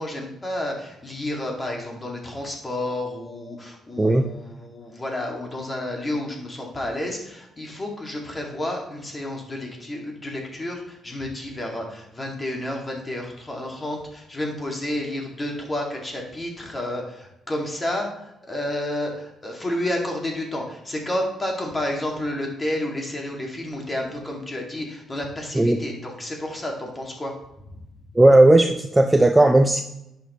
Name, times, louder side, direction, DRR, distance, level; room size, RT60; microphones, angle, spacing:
voice 1, 0.0-27.3 27.7-27.8, left 1 dB, 25° left, 0 dB, 2.3 m, -30 dB
voice 2, 28.2-29.8, right 2 dB, 15° right, 6 dB, 0.5 m, -15 dB
10.5 x 6.1 x 3.1 m, 0.86 s
cardioid pair, 90°, 0 cm